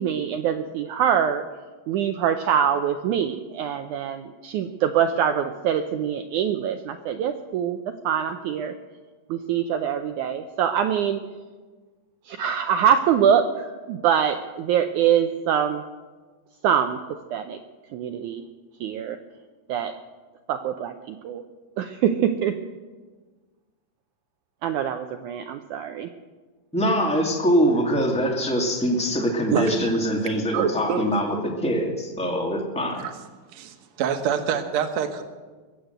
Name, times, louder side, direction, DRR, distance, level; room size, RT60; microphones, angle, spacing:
voice 1, 0.0-1.4 1.9-8.7 9.3-11.2 12.3-15.8 16.6-17.0 17.3-17.6 17.9-18.4 18.8-19.2 19.7-19.9 20.5-21.4 21.8-22.5 24.6-26.1, right 8 dB, 85° right, 7 dB, 1.7 m, -24 dB
voice 2, 26.7-33.0, equal, 5° left, 1 dB, 1.1 m, -23 dB
voice 3, 29.5-29.9 30.5-31.0 33.0-33.1 33.5-35.2, right 7 dB, 60° right, 7 dB, 2.0 m, -26 dB
21.5 x 8.2 x 7.9 m, 1.4 s
omnidirectional pair, 4.2 m